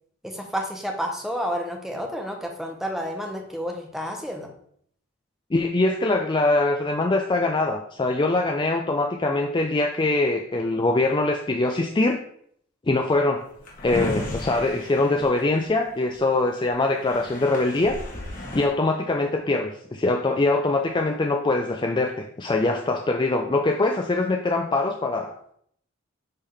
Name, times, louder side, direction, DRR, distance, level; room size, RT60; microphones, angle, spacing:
voice 1, 0.2-4.5, equal, ahead, 2 dB, 0.8 m, -30 dB
voice 2, 5.5-12.2 12.9-13.4 13.8-18.0 18.5-25.3, left 2 dB, 20° left, 3 dB, 0.4 m, -23 dB
Drawer open or close, 13.4-16.2 16.7-16.8 16.9-18.7, left 1 dB, 40° left, 1.5 m, -34 dB
9.7 x 3.6 x 3.4 m, 0.65 s
head